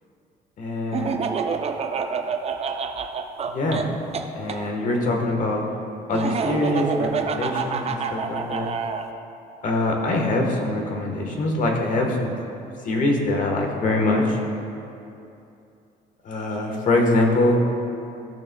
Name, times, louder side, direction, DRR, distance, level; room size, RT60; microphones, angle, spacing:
voice 1, 0.6-1.2 3.5-3.9 4.3-5.6 6.1-8.7 9.6-12.3 12.8-14.4 16.2-17.6, left 2 dB, 50° left, 1 dB, 1.3 m, -23 dB
Laughter, 0.9-4.6 6.1-9.1, right 6 dB, 40° right, 0.5 m, -27 dB
14.0 x 6.5 x 2.2 m, 2.7 s
cardioid pair, 110°, 17 cm